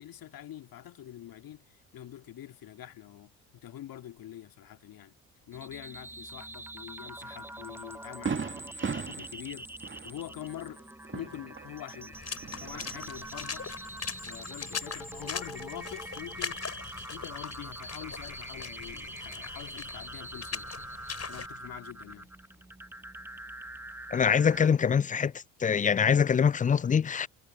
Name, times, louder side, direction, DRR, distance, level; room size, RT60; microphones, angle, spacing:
voice 1, 0.0-5.2 5.5-10.8 11.1-12.2 12.6-13.7 14.2-16.6 17.1-20.9 21.3-22.3, left 12 dB, 55° left, 2.2 m, -45 dB
sound 1, 5.5-24.7, right 1 dB, 5° right, 1.2 m, -44 dB
Fireworks, 7.2-7.3 7.8-7.9 8.3-12.0 12.3-13.2, right 5 dB, 25° right, 2.2 m, -37 dB
Water / Splash splatter, 12.1-21.5, left 6 dB, 35° left, 5.5 m, -41 dB
voice 2, 24.1-25.3 25.6-27.3, left 7 dB, 20° left, 0.4 m, -24 dB
hypercardioid pair, 50°, 42 cm